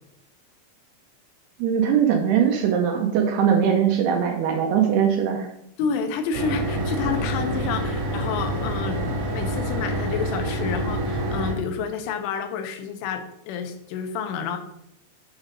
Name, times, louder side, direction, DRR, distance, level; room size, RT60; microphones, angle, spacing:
voice 1, 1.6-5.5, right 8 dB, 75° right, 2 dB, 2.4 m, -21 dB
voice 2, 5.8-9.0 9.3-14.6, left 6 dB, 90° left, 7 dB, 3.4 m, -29 dB
sound 1, 6.3-11.5, right 1 dB, 55° right, 2.0 m, -27 dB
7.1 x 6.2 x 5.1 m, 0.77 s
omnidirectional pair, 5.4 m